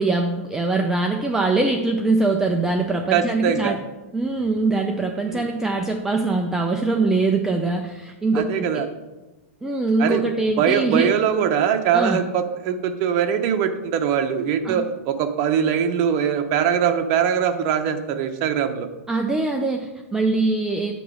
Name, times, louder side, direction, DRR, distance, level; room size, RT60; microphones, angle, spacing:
voice 1, 0.0-3.8 4.1-8.8 9.6-11.1 11.9-12.2 14.6-14.8 19.1-20.9, right 3 dB, 5° right, 2 dB, 0.4 m, -22 dB
voice 2, 3.1-3.8 5.1-5.5 8.3-8.9 10.0-10.2 10.6-18.9, right 8 dB, 40° right, 6 dB, 0.8 m, -22 dB
8.2 x 3.0 x 6.2 m, 1.1 s
hypercardioid pair, 135°, 8 cm